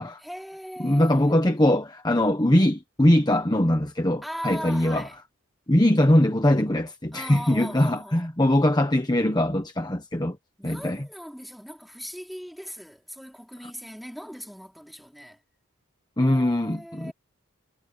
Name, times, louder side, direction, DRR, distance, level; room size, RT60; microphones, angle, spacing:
voice 1, 0.2-1.4 4.2-5.2 7.1-8.3 10.6-15.4 16.2-17.1, equal, ahead, 3.9 m, -39 dB
voice 2, 0.8-5.1 5.7-10.4 10.6-11.0 16.2-17.1, left 1 dB, 20° left, 1.1 m, -21 dB
head